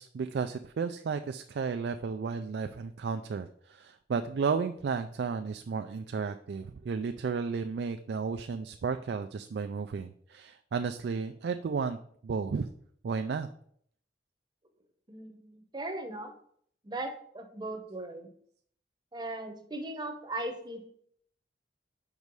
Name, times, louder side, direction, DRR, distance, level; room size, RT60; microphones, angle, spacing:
voice 1, 0.0-12.0 12.2-12.7 13.0-13.5, right 5 dB, 65° right, 7 dB, 0.3 m, -33 dB
voice 2, 15.1-16.3 16.8-18.3 19.1-20.9, right 2 dB, 25° right, 6 dB, 0.9 m, -38 dB
5.4 x 4.7 x 5.2 m, 0.63 s
head